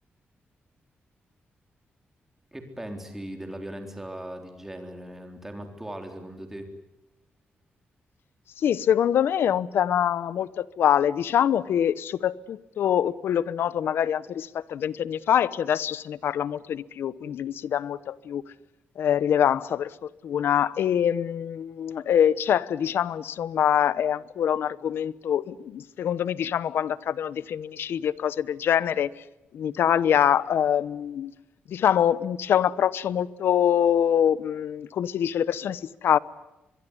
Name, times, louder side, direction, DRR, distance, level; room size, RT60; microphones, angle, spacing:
voice 1, 2.5-6.7, right 1 dB, 10° right, 3.8 m, -38 dB
voice 2, 8.6-18.4 19.0-29.1 29.5-31.3 31.7-36.2, left 9 dB, 75° left, 0.9 m, -24 dB
24.0 x 23.0 x 9.9 m
wide cardioid pair, 165°, 4 cm